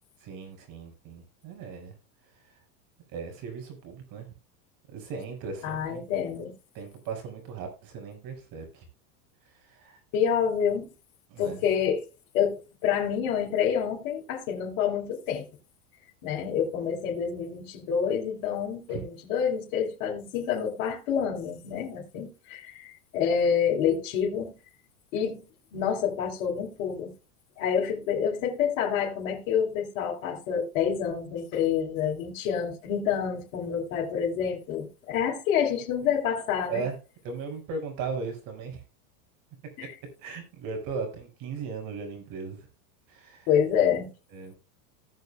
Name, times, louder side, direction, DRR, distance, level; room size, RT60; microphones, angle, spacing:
voice 1, 0.2-2.0 3.1-4.3 4.9-6.2 6.7-8.8 9.6-10.0 11.3-11.6 18.9-19.0 36.7-37.0 37.2-38.8 39.8-39.9 40.2-42.7 43.1-43.5 44.3-44.5, right 5 dB, 45° right, 5.3 m, -37 dB
voice 2, 5.6-6.5 10.1-10.9 11.4-12.0 12.3-15.5 16.2-24.5 25.1-25.4 25.7-27.1 27.6-36.8 39.8-39.9 43.5-44.1, left 8 dB, 60° left, 3.5 m, -28 dB
19.0 x 6.7 x 2.3 m
supercardioid pair, 135°, 45 cm